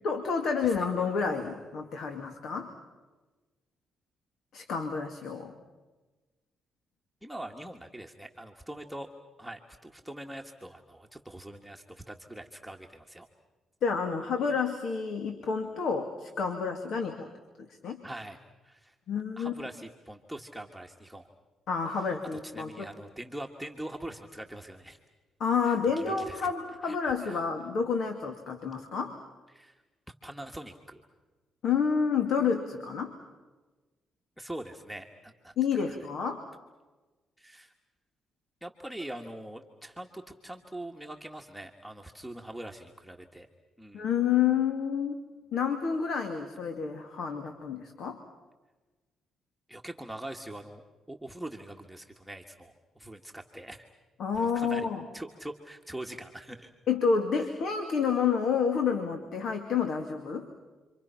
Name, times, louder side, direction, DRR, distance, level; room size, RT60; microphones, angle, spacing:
voice 1, 0.0-2.7 4.5-5.5 13.8-17.3 17.7-18.0 19.1-19.5 21.7-22.9 25.4-29.1 31.6-33.1 35.6-36.4 43.9-45.2 45.5-48.2 54.2-55.1 56.9-60.5, left 6 dB, 70° left, 6 dB, 2.3 m, -29 dB
voice 2, 7.2-9.1 9.4-13.3 18.0-18.9 19.4-21.3 21.9-25.0 25.6-26.5 26.8-27.4 29.5-29.8 30.2-31.0 34.4-35.5 35.9-36.0 37.4-37.7 38.6-43.5 43.8-44.1 49.7-50.8 51.1-53.8 54.3-54.9 55.1-56.7 57.4-57.5, right 1 dB, ahead, 1 dB, 1.7 m, -43 dB
30.0 x 25.0 x 5.8 m, 1.2 s
cardioid pair, 90°, 0 cm